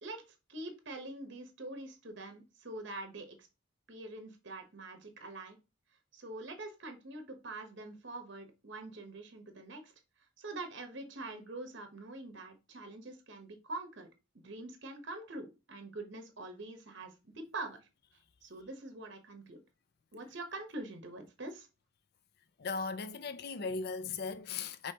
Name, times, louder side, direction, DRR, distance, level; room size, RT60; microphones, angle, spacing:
voice 1, 0.0-3.5 3.9-5.6 6.1-9.9 10.4-14.1 14.3-17.8 18.4-19.6 20.1-21.7, right 2 dB, 60° right, 0.9 m, -45 dB
voice 2, 22.6-24.9, left 4 dB, 50° left, 0.4 m, -37 dB
5.2 x 3.1 x 2.8 m
head